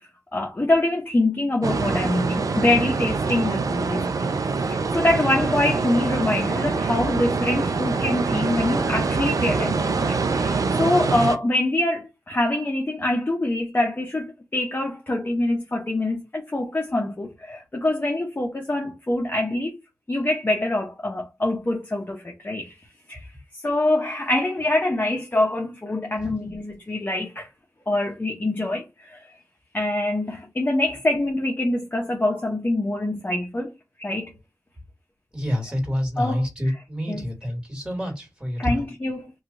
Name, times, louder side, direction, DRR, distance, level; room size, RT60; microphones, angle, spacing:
voice 1, 0.3-19.7 20.1-22.8 23.1-23.3 23.6-27.5 27.9-29.3 29.7-33.7 34.0-34.3 36.2-36.4 37.1-37.2 38.6-39.3, left 1 dB, 35° left, 0.8 m, -25 dB
sound 1, 1.6-11.4, right 4 dB, 80° right, 0.4 m, -24 dB
voice 2, 35.3-38.9, equal, 15° right, 1.9 m, -28 dB
2.9 x 2.3 x 3.9 m
wide cardioid pair, 50°, 6 cm